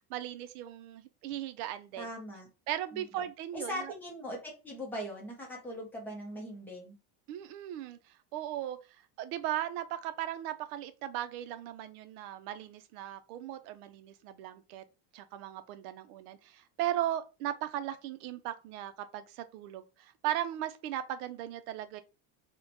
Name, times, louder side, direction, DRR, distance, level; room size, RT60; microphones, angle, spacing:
voice 1, 0.1-2.1 2.7-3.9 7.3-8.0 8.3-8.8 9.2-14.8 15.1-22.0, right 12 dB, 75° right, 0.5 m, -37 dB
voice 2, 2.0-2.5 2.9-3.3 3.5-6.9, equal, 5° left, 0.4 m, -40 dB
2.9 x 2.1 x 3.8 m
cardioid pair, 175°, 46 cm